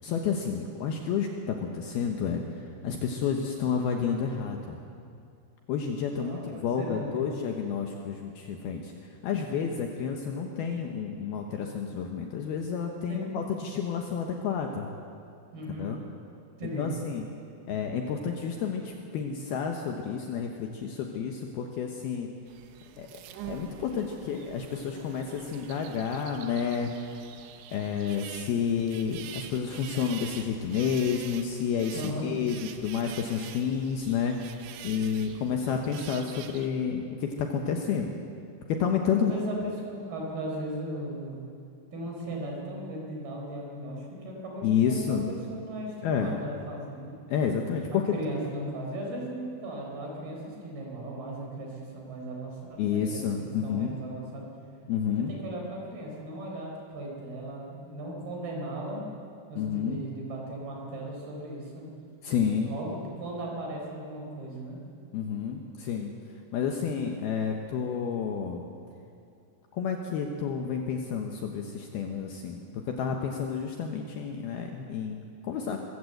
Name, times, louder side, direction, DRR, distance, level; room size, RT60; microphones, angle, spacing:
voice 1, 0.0-2.4 2.8-4.8 5.7-8.9 9.2-14.9 15.8-16.0 16.8-17.2 17.7-22.3 23.0-23.2 23.5-27.0 27.7-32.6 32.8-34.4 34.8-38.1 38.7-39.3 44.6-45.3 46.0-46.4 47.3-48.0 52.8-54.0 54.9-55.3 59.6-60.0 62.2-62.7 65.1-66.1 66.5-68.6 69.7-72.6 72.9-75.8, left 7 dB, 70° left, 3 dB, 2.6 m, -30 dB
voice 2, 6.2-7.3 13.1-13.3 15.5-15.9 16.6-16.9 31.9-32.3 39.2-41.4 41.9-47.2 47.9-54.5 55.3-59.0 59.5-61.9 62.6-64.8, right 1 dB, 55° right, -1 dB, 5.8 m, -37 dB
sound 1, 22.5-36.7, right 9 dB, 75° right, 3.2 m, -46 dB
22.5 x 15.5 x 7.9 m, 2.4 s
omnidirectional pair, 5.5 m